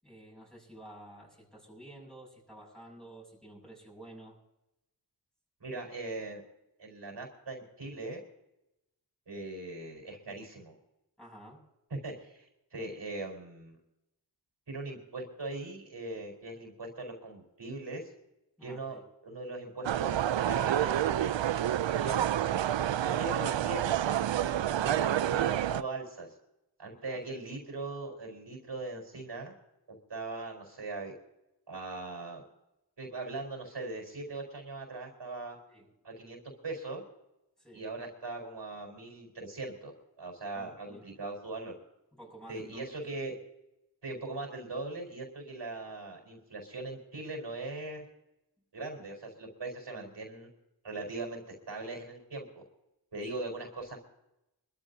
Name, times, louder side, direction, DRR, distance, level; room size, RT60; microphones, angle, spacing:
voice 1, 0.0-4.4 11.2-11.6 18.6-19.1 27.0-27.2 35.7-35.9 37.6-37.8 40.5-41.0 42.1-42.8 50.0-50.1, right 1 dB, ahead, -2 dB, 6.6 m, -51 dB
voice 2, 5.6-6.4 6.8-8.2 9.3-10.8 11.9-12.5 12.7-13.8 14.7-18.1 18.6-21.3 21.9-22.2 23.0-26.3 26.8-29.5 29.9-31.1 31.7-32.4 33.0-35.6 36.0-37.0 37.7-39.9 40.2-41.8 42.5-43.3 44.0-48.0 48.7-50.5 50.8-52.6 53.1-54.0, right 2 dB, 70° right, 2 dB, 4.6 m, -40 dB
sound 1, 19.8-25.8, right 11 dB, 85° right, 0.5 m, -28 dB
25.0 x 13.5 x 2.8 m, 0.90 s
wide cardioid pair, 60°, 44 cm